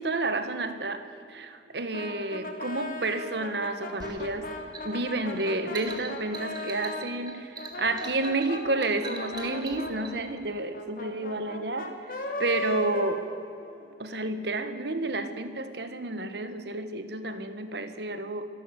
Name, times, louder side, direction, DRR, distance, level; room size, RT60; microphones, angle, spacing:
voice 1, 0.0-4.5 4.8-12.0 12.4-13.2 14.0-18.5, right 2 dB, 65° right, 9 dB, 1.7 m, -30 dB
Brass instrument, 1.9-7.1 7.6-13.9, left 2 dB, 50° left, 2.8 m, -37 dB
sound 1, 4.0-10.2, right 4 dB, 25° right, 2.6 m, -43 dB
26.0 x 12.5 x 8.5 m, 2.8 s
head